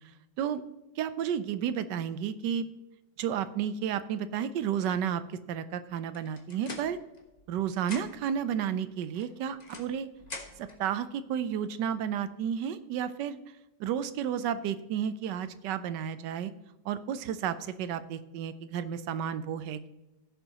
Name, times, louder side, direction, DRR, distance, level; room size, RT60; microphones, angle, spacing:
voice 1, 1.0-2.7 3.2-7.0 7.5-10.1 10.6-13.4 13.8-16.5 16.8-19.9, right 8 dB, 90° right, 13 dB, 1.3 m, -32 dB
sound 1, 6.1-7.5 7.8-8.4 9.1-10.8, left 2 dB, 25° left, 1.2 m, -45 dB
15.5 x 6.9 x 2.9 m, 0.99 s
omnidirectional pair, 1.9 m